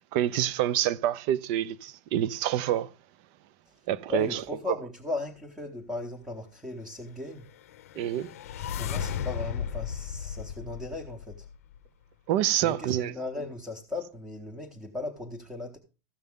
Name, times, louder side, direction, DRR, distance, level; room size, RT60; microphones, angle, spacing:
voice 1, 0.1-2.9 3.9-4.4 4.7-4.8 8.0-8.3 12.3-13.1, right 11 dB, 35° right, 0.4 m, -27 dB
voice 2, 4.1-7.5 8.8-11.5 12.6-15.8, left 2 dB, 5° right, 0.8 m, -37 dB
sound 1, 7.6-11.8, left 8 dB, 65° left, 0.6 m, -35 dB
14.0 x 6.6 x 3.5 m
supercardioid pair, 180°, 8 cm